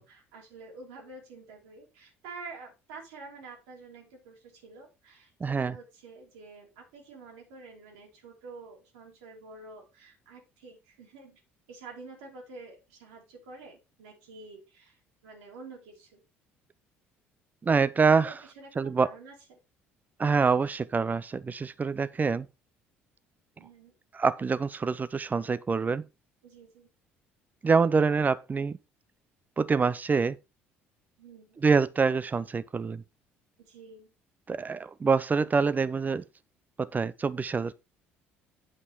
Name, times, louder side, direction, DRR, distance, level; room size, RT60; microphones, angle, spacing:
voice 1, 0.0-11.4 11.7-15.0 15.2-16.2 18.2-19.6 23.6-23.9 26.4-26.9 31.2-31.6 33.6-34.1, right 3 dB, 70° right, 2.8 m, -48 dB
voice 2, 5.4-5.8 17.6-18.3 18.8-19.1 20.2-22.5 24.1-26.0 27.6-28.8 29.6-30.4 31.6-33.0 34.5-36.2 36.8-37.8, right 5 dB, 25° right, 0.7 m, -25 dB
8.3 x 5.4 x 4.8 m
figure-of-eight pair, 55°, 6 cm